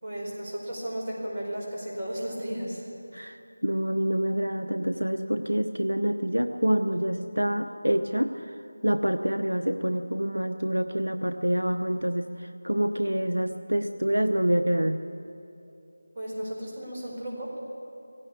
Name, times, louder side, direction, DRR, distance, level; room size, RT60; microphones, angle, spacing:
voice 1, 0.0-2.8 16.1-17.5, right 1 dB, 25° right, -4 dB, 4.8 m, -34 dB
voice 2, 3.1-8.6 8.8-15.0, equal, 85° right, 7 dB, 0.9 m, -27 dB
18.0 x 17.5 x 8.4 m, 2.8 s
figure-of-eight pair, 165°, 0 cm